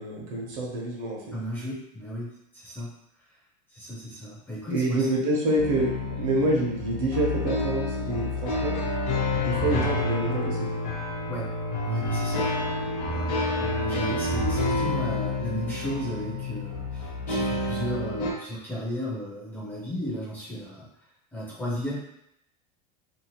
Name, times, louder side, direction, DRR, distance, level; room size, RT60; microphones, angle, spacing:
voice 1, 0.0-1.2 4.7-8.8 9.4-10.7, right 1 dB, 55° right, -2 dB, 0.9 m, -27 dB
voice 2, 1.3-2.9 3.7-5.1 11.3-11.5 11.8-12.5 13.1-20.9 21.3-22.0, equal, 10° left, -7 dB, 0.5 m, -34 dB
sound 1, 5.6-18.3, left 2 dB, 65° left, 0.9 m, -29 dB
2.7 x 2.4 x 2.9 m, 0.78 s
supercardioid pair, 170°, 21 cm